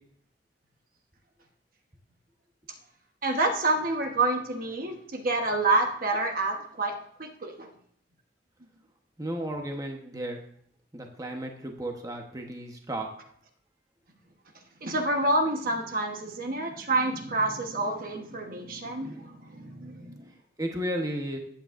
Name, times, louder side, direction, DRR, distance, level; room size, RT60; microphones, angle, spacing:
voice 1, 3.2-7.7 14.8-20.3, right 2 dB, 50° right, 4 dB, 1.2 m, -28 dB
voice 2, 9.2-10.4 10.9-13.1 20.6-21.4, right 1 dB, 20° right, 2 dB, 1.1 m, -33 dB
15.0 x 8.9 x 2.6 m, 0.64 s
head